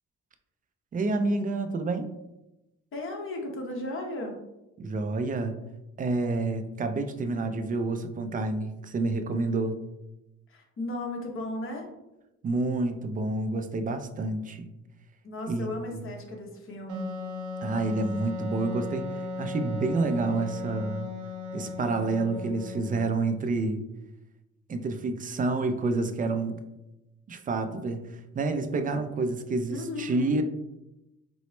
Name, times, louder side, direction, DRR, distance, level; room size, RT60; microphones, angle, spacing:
voice 1, 0.9-2.1 4.8-5.6 6.0-9.8 12.4-14.7 15.5-16.1 17.6-21.1 21.5-23.8 24.7-26.6 27.3-28.0 28.3-30.4, right 3 dB, 30° right, 8 dB, 0.4 m, -29 dB
voice 2, 2.9-4.4 10.5-11.9 15.2-17.2 29.7-30.3, left 1 dB, 45° left, 1 dB, 0.9 m, -35 dB
Wind instrument woodwind instrument, 16.9-23.3, left 3 dB, 80° right, 0.6 m, -36 dB
4.2 x 2.0 x 3.0 m, 0.95 s
cardioid pair, 90°, 30 cm